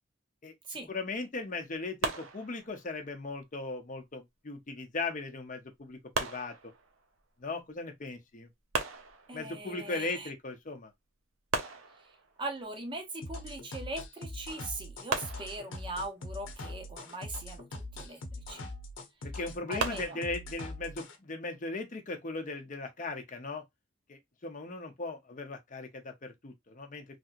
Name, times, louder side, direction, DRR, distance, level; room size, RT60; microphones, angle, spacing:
voice 1, 0.4-6.5 7.4-8.5 9.3-10.9 19.2-23.6 24.1-27.0, left 3 dB, 40° left, 0.7 m, -38 dB
sound 1, 2.0-3.0 6.1-7.2 8.7-9.7 11.5-12.5 15.1-16.1 19.8-20.3, right 4 dB, 85° right, 0.7 m, -36 dB
voice 2, 9.3-10.3 12.0-18.7 19.7-20.2, right 2 dB, 25° right, 0.6 m, -41 dB
sound 2, 13.2-21.2, left 1 dB, 70° left, 0.8 m, -42 dB
3.3 x 2.8 x 2.4 m
head